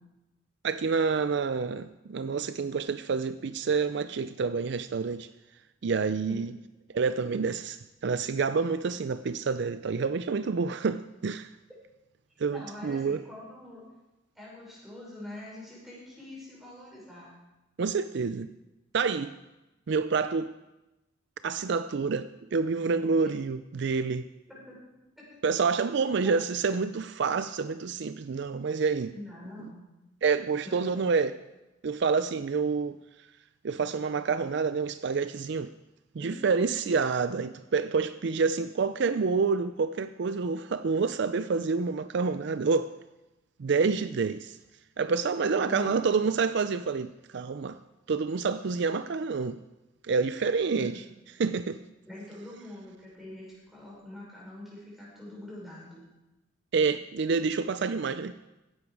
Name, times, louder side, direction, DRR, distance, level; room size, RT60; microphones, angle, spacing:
voice 1, 0.6-5.3 5.8-6.5 6.9-11.5 12.4-13.2 17.8-18.5 18.9-19.3 19.9-20.5 21.4-24.3 25.4-29.1 30.2-31.4 31.8-33.0 33.6-35.7 36.1-42.9 43.6-44.6 45.0-47.8 48.1-49.6 50.0-50.9 51.4-51.8 56.7-58.3, right 5 dB, 60° right, 0.4 m, -28 dB
voice 2, 12.5-13.8 14.3-17.4 23.2-23.3 24.5-24.8 25.2-25.4 26.2-26.4 29.1-29.8 30.6-31.0 36.2-36.9 45.5-45.9 50.8-51.0 52.1-56.1, left 1 dB, ahead, 5.7 m, -44 dB
16.0 x 10.5 x 4.7 m
head